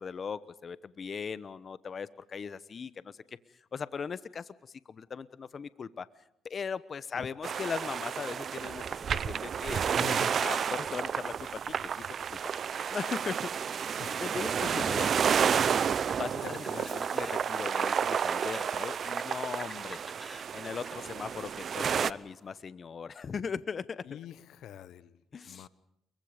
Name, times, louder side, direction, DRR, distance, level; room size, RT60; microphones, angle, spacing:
voice 1, 0.0-3.2 3.7-6.1 6.4-8.8 9.1-9.9 10.4-12.4 12.9-13.9 14.2-15.1 16.2-20.0 20.5-24.2 25.3-25.7, left 6 dB, 45° left, 16 dB, 1.0 m, -39 dB
sound 1, 7.4-22.1, right 7 dB, 55° right, 0.8 m, -31 dB
voice 2, 9.9-10.3 14.0-14.2 16.4-16.9 24.1-25.1 25.5-25.7, left 11 dB, 80° left, 16 dB, 1.0 m, -44 dB
sound 2, 15.3-22.6, equal, ahead, 4.3 m, -52 dB
28.5 x 23.5 x 5.1 m, 0.78 s
cardioid pair, 90°, 0 cm